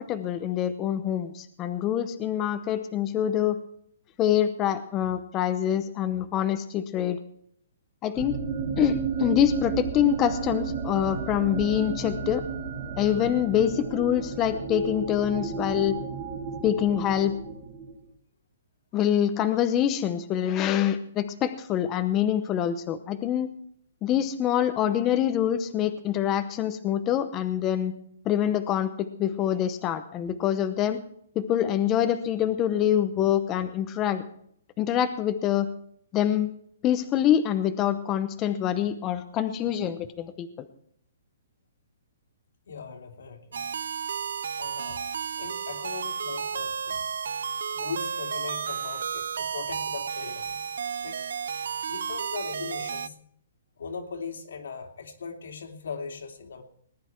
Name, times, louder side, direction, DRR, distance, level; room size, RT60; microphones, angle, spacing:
voice 1, 0.0-3.6 4.2-7.2 8.0-8.4 8.8-12.4 13.0-16.0 16.6-17.3 18.9-23.5 24.0-27.9 28.2-31.0 31.3-34.2 34.8-35.7 36.1-36.5 36.8-40.5, left 10 dB, 20° left, 9 dB, 0.8 m, -25 dB
sound 1, 8.2-18.0, right 6 dB, 30° right, 2.6 m, -33 dB
voice 2, 42.7-43.7 44.6-45.0 45.4-47.0 47.7-50.7 51.0-51.2 51.9-53.2 53.8-56.6, left 5 dB, 80° left, 4 dB, 2.7 m, -39 dB
sound 2, 43.5-53.1, right 7 dB, 75° right, 0.5 m, -32 dB
19.5 x 10.5 x 4.5 m, 0.65 s
hypercardioid pair, 165°, 0 cm